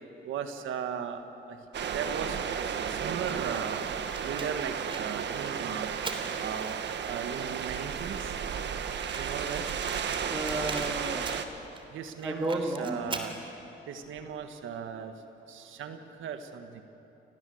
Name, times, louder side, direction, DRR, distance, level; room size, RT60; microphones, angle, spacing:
voice 1, 0.2-1.2 1.5-1.6 1.9-3.9 4.2-5.9 6.4-6.8 7.0-8.4 9.1-9.6 11.9-13.4 13.9-15.1 15.5-16.8, right 7 dB, 80° right, 7 dB, 1.7 m, -37 dB
sound 1, 1.7-11.4, right 7 dB, 65° right, 1.6 m, -33 dB
Fire, 3.2-7.0 7.7-7.8 8.0-8.1 8.3-8.4 8.9-11.8 12.2-13.4, right 3 dB, 25° right, 3.2 m, -42 dB
voice 2, 10.3-11.6 12.2-13.0, right 1 dB, 10° right, 0 dB, 2.4 m, -33 dB
29.5 x 19.0 x 8.0 m, 3.0 s
cardioid pair, 90°, 20 cm